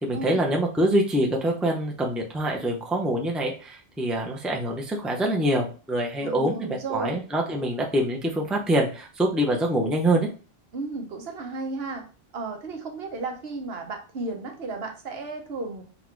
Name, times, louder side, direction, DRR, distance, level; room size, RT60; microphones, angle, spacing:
voice 1, 0.0-10.3, right 1 dB, ahead, 0 dB, 0.6 m, -25 dB
voice 2, 6.2-7.2 10.7-12.0 12.3-15.8, right 3 dB, 70° right, 3 dB, 1.1 m, -33 dB
4.1 x 2.5 x 4.5 m, 0.36 s
omnidirectional pair, 1.1 m